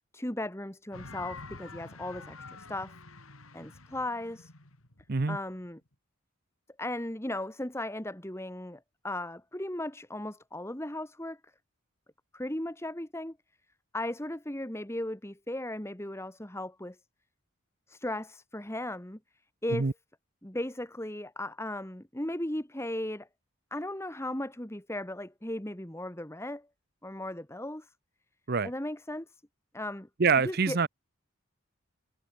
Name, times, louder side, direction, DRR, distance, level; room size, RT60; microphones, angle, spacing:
voice 1, 0.1-3.0 3.5-4.5 5.3-5.8 6.8-11.4 12.3-13.4 13.9-17.0 17.9-19.2 19.6-19.9 20.4-23.3 23.7-26.7 27.0-27.9 28.6-29.3 29.7-30.1 30.4-30.8, left 1 dB, 15° left, 1.7 m, -36 dB
sound 1, 0.9-5.8, left 3 dB, 90° left, 4.0 m, -47 dB
voice 2, 30.2-30.9, right 5 dB, 50° right, 0.7 m, -25 dB
head